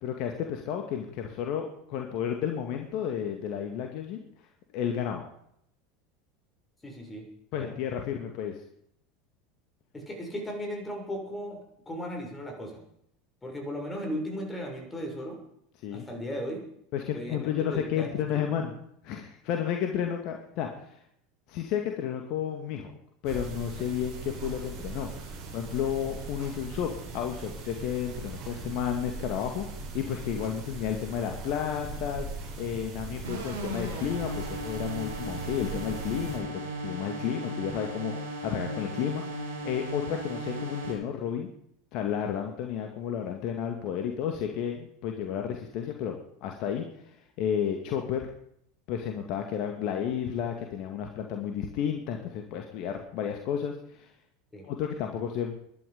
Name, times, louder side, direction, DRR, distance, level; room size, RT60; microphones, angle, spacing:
voice 1, 0.0-4.2 4.7-5.2 7.5-8.6 15.8-16.1 16.9-18.7 19.0-21.0 21.5-22.9 23.2-25.1 25.5-32.3 32.6-41.5 41.9-48.3 48.9-54.1 54.6-55.5, left 9 dB, 50° left, 3 dB, 2.1 m, -32 dB
voice 2, 6.8-7.3 7.5-7.7 9.9-11.6 11.8-12.8 13.4-15.4 15.9-16.6 17.1-18.4 54.5-54.7, equal, 15° left, 1 dB, 6.8 m, -36 dB
sound 1, 23.2-36.4, right 3 dB, 50° right, 7.3 m, -40 dB
sound 2, 33.2-40.9, right 1 dB, 80° right, 4.5 m, -36 dB
21.5 x 11.5 x 5.3 m, 0.71 s
figure-of-eight pair, 80°, 0 cm